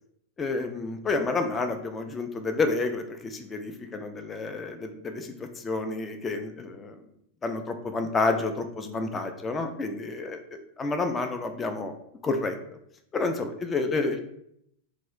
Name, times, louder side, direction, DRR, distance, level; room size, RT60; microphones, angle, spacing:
voice 1, 0.4-7.0 7.4-10.4 10.8-11.9 12.2-12.6 13.1-14.2, left 3 dB, 20° left, 6 dB, 0.4 m, -29 dB
2.2 x 2.0 x 3.7 m, 0.73 s
figure-of-eight pair, 90°, 0 cm